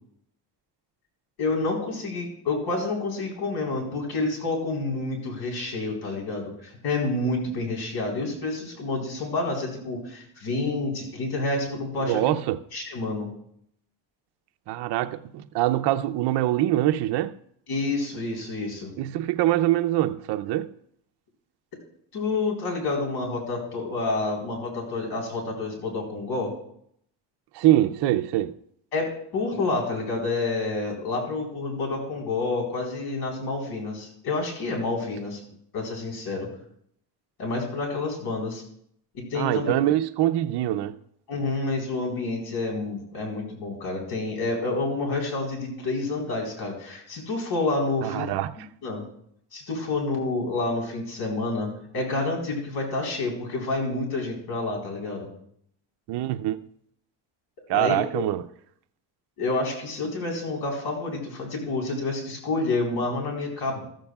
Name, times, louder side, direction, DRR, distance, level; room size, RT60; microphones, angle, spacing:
voice 1, 1.4-12.2 12.7-13.3 17.7-18.9 22.1-26.5 28.9-35.4 35.7-36.5 37.4-38.6 39.1-39.7 41.3-48.3 48.6-49.0 49.5-55.3 57.7-58.2 59.4-63.8, left 3 dB, 55° left, 4.3 m, -29 dB
voice 2, 12.1-12.6 14.7-17.3 19.0-20.7 27.5-28.5 39.3-41.0 48.0-48.5 56.1-56.6 57.7-58.4, right 14 dB, 60° right, 0.6 m, -24 dB
14.5 x 14.0 x 2.4 m
cardioid pair, 145°, 45 cm